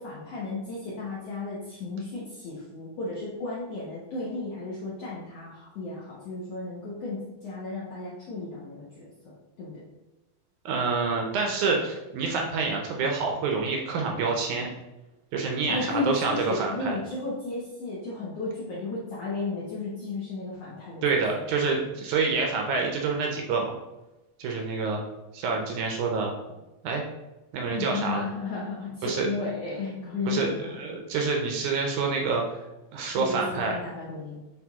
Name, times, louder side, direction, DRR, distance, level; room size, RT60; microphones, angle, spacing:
voice 1, 0.0-9.8 15.7-21.4 27.6-30.8 33.2-34.4, left 3 dB, 65° left, -7 dB, 1.6 m, -34 dB
voice 2, 10.7-14.7 15.3-17.0 21.0-23.7 24.4-25.0 25.3-26.4 26.8-27.0 27.5-28.2 29.0-29.3 30.3-32.6 32.9-33.8, right 4 dB, 75° right, 1 dB, 1.8 m, -27 dB
7.7 x 3.4 x 3.6 m, 1.0 s
omnidirectional pair, 4.2 m